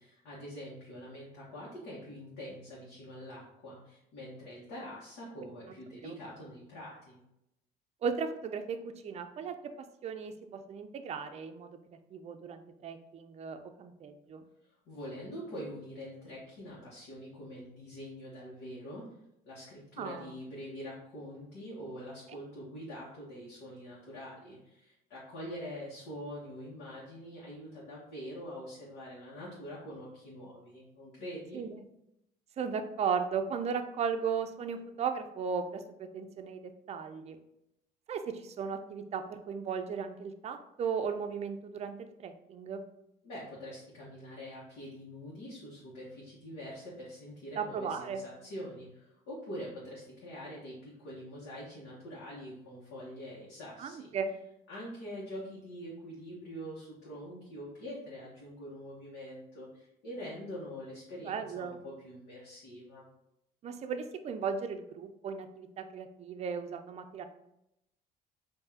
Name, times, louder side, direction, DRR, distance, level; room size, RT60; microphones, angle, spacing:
voice 1, 0.0-7.2 14.6-19.0 19.4-31.6 43.2-54.1 54.7-63.1, equal, 85° left, -7 dB, 1.2 m, -45 dB
voice 2, 8.0-9.6 10.0-11.7 12.1-14.5 20.0-20.3 31.5-31.8 32.6-37.4 38.1-42.8 47.5-48.2 53.8-54.3 61.2-61.8 63.6-67.2, right 6 dB, 40° right, 7 dB, 0.4 m, -36 dB
4.6 x 2.6 x 2.8 m, 0.83 s
cardioid pair, 110°, 17 cm